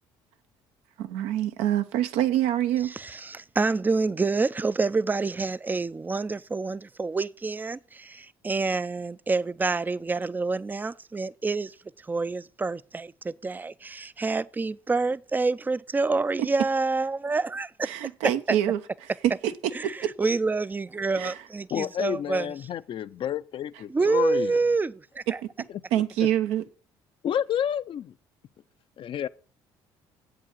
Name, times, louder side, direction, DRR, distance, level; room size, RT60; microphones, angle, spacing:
voice 1, 1.0-2.9 16.4-16.5 17.8-20.1 21.2-21.4 25.3-26.6, right 12 dB, 80° right, 0.7 m, -26 dB
voice 2, 3.0-11.7 12.1-17.9 19.8-19.9 20.2-22.5 23.9-25.2, right 3 dB, 15° right, 0.4 m, -27 dB
voice 3, 21.7-24.6 27.2-28.1 29.0-29.3, left 9 dB, 55° left, 0.5 m, -30 dB
7.9 x 4.9 x 7.4 m
supercardioid pair, 70°, 11 cm